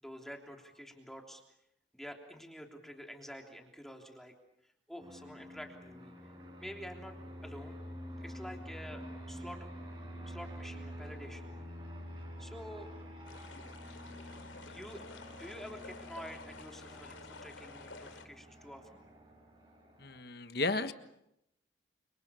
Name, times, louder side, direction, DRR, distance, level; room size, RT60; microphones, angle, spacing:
voice 1, 0.0-1.4 1.9-4.3 4.6-6.1 6.6-7.2 7.4-7.8 8.2-9.7 10.2-11.5 12.4-12.9 14.7-19.0, equal, ahead, 3 dB, 3.2 m, -48 dB
Fixed-wing aircraft airplane, 5.0-20.2, equal, 25° right, 5.6 m, -48 dB
sound 1, 13.3-18.3, left 3 dB, 85° left, 2.9 m, -51 dB
voice 2, 20.0-20.9, left 3 dB, 55° left, 10 dB, 1.5 m, -33 dB
29.5 x 27.0 x 7.0 m, 0.81 s
head